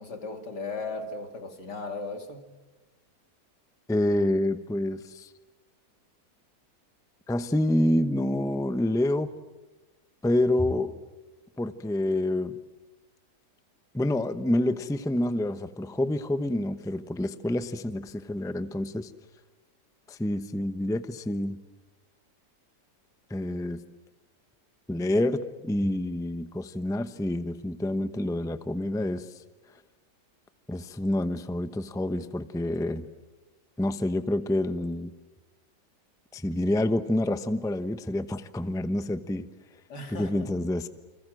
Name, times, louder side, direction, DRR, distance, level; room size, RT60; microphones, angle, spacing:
voice 1, 0.0-2.5 39.9-40.5, left 3 dB, 80° left, 3.2 m, -36 dB
voice 2, 3.9-5.3 7.3-9.3 10.2-10.9 11.6-12.6 13.9-19.1 20.1-21.6 23.3-23.8 24.9-29.3 30.7-33.0 33.8-35.1 36.3-39.5 40.1-40.9, left 1 dB, 5° left, 0.7 m, -27 dB
29.0 x 26.0 x 7.7 m
omnidirectional pair, 1.8 m